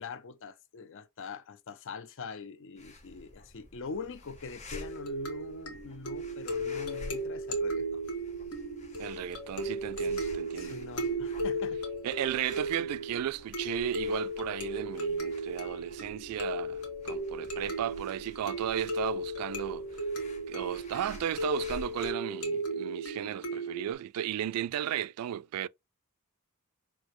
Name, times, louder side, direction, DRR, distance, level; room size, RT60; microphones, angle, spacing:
voice 1, 0.0-8.0 10.0-10.2 10.5-11.8, left 5 dB, 60° left, 0.5 m, -43 dB
sound 1, 2.8-22.1, left 1 dB, 30° left, 1.2 m, -51 dB
sound 2, 4.7-23.9, right 1 dB, 75° left, 1.3 m, -35 dB
voice 2, 9.0-10.8 12.0-19.8 20.5-25.7, right 10 dB, 90° right, 0.3 m, -34 dB
6.0 x 2.8 x 3.0 m
head